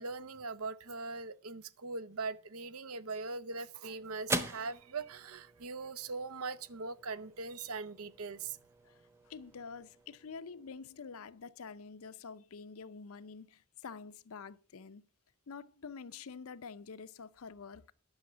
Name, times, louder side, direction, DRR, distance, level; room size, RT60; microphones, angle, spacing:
voice 1, 0.0-8.6, right 4 dB, 75° right, 0.8 m, -41 dB
sound 1, 3.0-11.6, right 1 dB, 10° right, 0.9 m, -44 dB
voice 2, 9.3-15.0 15.5-17.9, left 5 dB, 70° left, 0.6 m, -47 dB
10.5 x 6.4 x 6.8 m
head